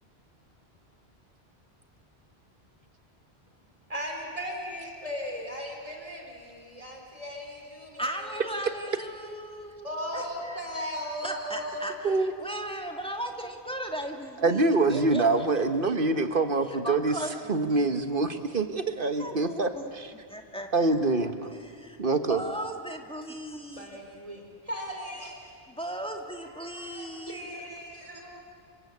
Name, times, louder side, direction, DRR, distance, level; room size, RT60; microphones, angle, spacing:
voice 1, 3.9-8.8 9.8-11.9 23.8-25.6 26.5-28.4, equal, 35° right, 1 dB, 4.0 m, -37 dB
voice 2, 8.0-10.7 11.2-15.6 16.7-17.3 17.7-17.9 19.2-19.9 20.3-20.9 21.2-22.0 22.3-24.0 25.7-27.5, right 1 dB, 5° left, 3 dB, 2.2 m, -37 dB
voice 3, 14.4-17.1 17.5-20.1 20.7-21.5 22.0-22.4, right 3 dB, 55° right, 9 dB, 1.5 m, -25 dB
28.0 x 24.5 x 8.6 m, 2.1 s
omnidirectional pair, 1.1 m